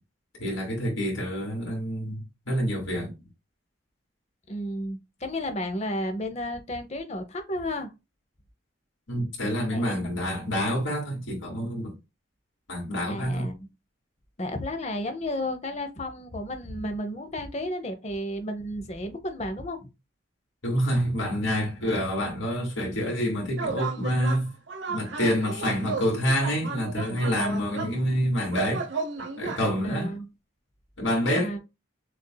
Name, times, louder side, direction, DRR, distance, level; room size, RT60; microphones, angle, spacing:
voice 1, 0.4-2.2 2.5-3.1 9.1-11.9 12.7-13.5 20.6-24.5 24.9-28.9 29.4-30.1 31.0-31.5, equal, 85° left, 2.5 m, -27 dB
voice 2, 4.5-7.9 9.7-10.1 13.1-13.7 14.4-19.9 29.8-30.3 31.3-31.6, left 1 dB, 35° left, 0.7 m, -32 dB
sound 1, 23.6-24.4 24.7-27.9 28.5-29.7, right 4 dB, 65° right, 0.8 m, -33 dB
6.6 x 2.6 x 2.2 m
head